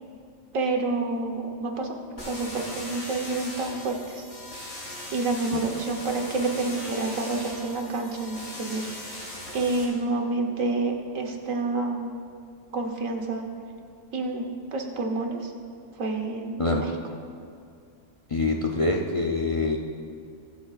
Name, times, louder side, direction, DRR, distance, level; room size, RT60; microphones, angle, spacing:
voice 1, 0.5-2.0 2.3-4.2 5.1-8.9 9.5-12.1 12.7-13.5 14.1-15.5 16.0-16.9, right 3 dB, 90° right, 3 dB, 1.5 m, -28 dB
sound 1, 2.2-9.8, left 1 dB, 85° left, 3.7 m, -39 dB
voice 2, 18.3-19.8, left 3 dB, 35° left, 1 dB, 0.5 m, -25 dB
24.0 x 8.6 x 2.4 m, 2.4 s
omnidirectional pair, 1.3 m